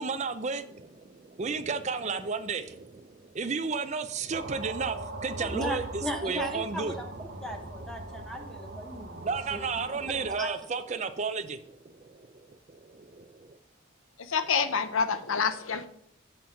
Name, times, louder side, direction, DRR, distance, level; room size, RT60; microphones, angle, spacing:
voice 1, 0.0-7.0 7.6-7.9 9.2-13.6, right 5 dB, 35° right, 9 dB, 0.5 m, -33 dB
sound 1, 4.3-10.3, right 2 dB, 50° right, 0.9 m, -41 dB
voice 2, 5.4-9.6 10.4-10.5, equal, ahead, 3 dB, 0.8 m, -37 dB
voice 3, 14.3-15.9, left 6 dB, 80° left, 11 dB, 0.7 m, -27 dB
7.6 x 5.9 x 5.0 m, 0.71 s
head